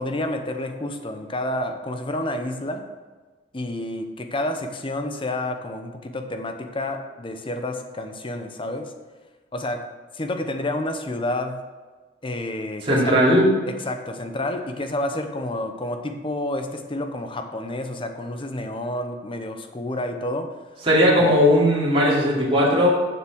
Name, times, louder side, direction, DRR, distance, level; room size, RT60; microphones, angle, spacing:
voice 1, 0.0-2.8 3.5-8.9 9.5-9.8 10.1-11.6 12.2-13.1 13.7-20.5 21.2-21.4, left 1 dB, 30° left, 6 dB, 0.9 m, -29 dB
voice 2, 12.8-13.5 20.8-23.0, equal, 30° right, -7 dB, 2.8 m, -17 dB
7.3 x 6.7 x 6.3 m, 1.3 s
head